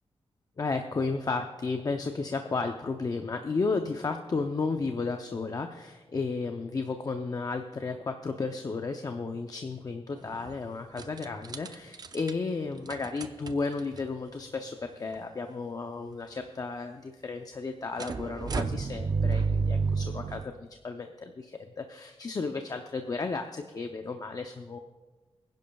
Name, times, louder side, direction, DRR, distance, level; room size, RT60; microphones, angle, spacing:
voice 1, 0.6-24.8, left 4 dB, 35° left, 5 dB, 0.6 m, -33 dB
sound 1, 10.2-10.6 11.0-12.3 12.9-14.1 14.9-15.0 15.1-15.2 18.0-20.5, right 4 dB, 40° right, 0.5 m, -30 dB
24.0 x 10.5 x 2.3 m, 1.2 s
wide cardioid pair, 125°, 10 cm